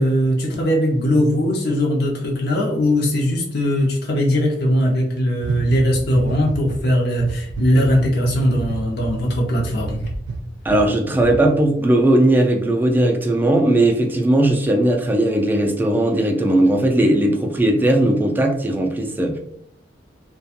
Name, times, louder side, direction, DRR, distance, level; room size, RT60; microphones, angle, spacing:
voice 1, 0.0-10.0, equal, 60° left, -2 dB, 0.6 m, -19 dB
sound 1, 5.4-6.8 7.2-10.9 11.2-11.4, right 3 dB, 90° right, 0.4 m, -28 dB
voice 2, 10.6-19.4, right 1 dB, 10° right, 1 dB, 0.3 m, -18 dB
2.3 x 2.2 x 2.7 m, 0.71 s
head